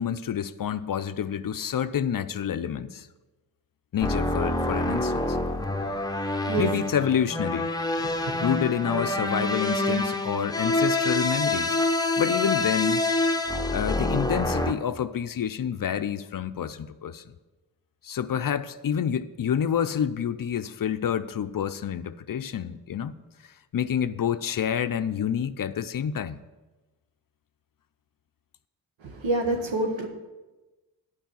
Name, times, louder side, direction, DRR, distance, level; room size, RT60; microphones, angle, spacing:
voice 1, 0.0-3.1 3.9-5.4 6.6-7.7 8.4-11.8 12.2-13.0 13.7-17.2 18.0-23.1 23.7-26.4, left 8 dB, 50° left, 0.5 m, -28 dB
sound 1, 4.0-14.7, left 2 dB, 10° left, 0.8 m, -26 dB
voice 2, 8.0-8.3 29.0-30.1, right 2 dB, 85° right, 1.3 m, -27 dB
9.3 x 4.8 x 7.1 m
cardioid pair, 50°, 45 cm